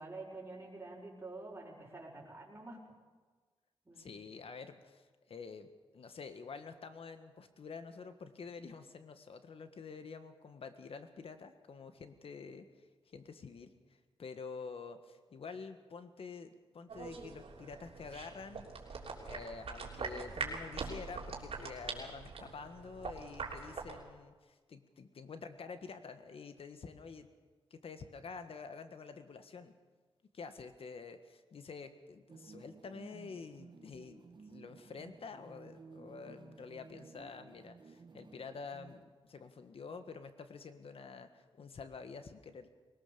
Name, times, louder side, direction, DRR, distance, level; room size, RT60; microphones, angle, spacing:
voice 1, 0.0-2.8 3.9-4.1, right 2 dB, 20° right, -8 dB, 5.3 m, -47 dB
voice 2, 4.0-13.7 14.2-18.7 19.3-27.3 27.7-29.7 30.3-42.7, left 5 dB, 70° left, 9 dB, 1.6 m, -48 dB
sound 1, 16.9-24.0, right 4 dB, 75° right, 3.3 m, -43 dB
sound 2, 32.3-39.0, right 4 dB, 50° right, 1.3 m, -56 dB
21.0 x 19.0 x 6.9 m, 1.4 s
cardioid pair, 80°, 10 cm